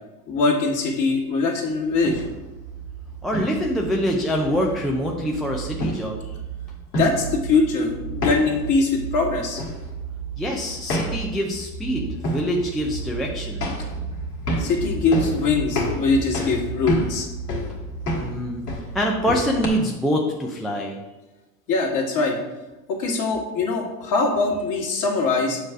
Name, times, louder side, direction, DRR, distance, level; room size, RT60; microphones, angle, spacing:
voice 1, 0.3-2.2 7.0-9.6 14.6-17.3 21.7-22.3 22.9-25.6, left 3 dB, 40° left, 0 dB, 1.9 m, -22 dB
sound 1, 1.9-19.7, right 1 dB, 85° left, 1.8 m, -30 dB
voice 2, 3.2-6.2 10.4-13.7 18.2-18.6 18.9-21.0, equal, ahead, -1 dB, 0.3 m, -25 dB
6.8 x 3.3 x 6.0 m, 1.1 s
hypercardioid pair, 95°, 46 cm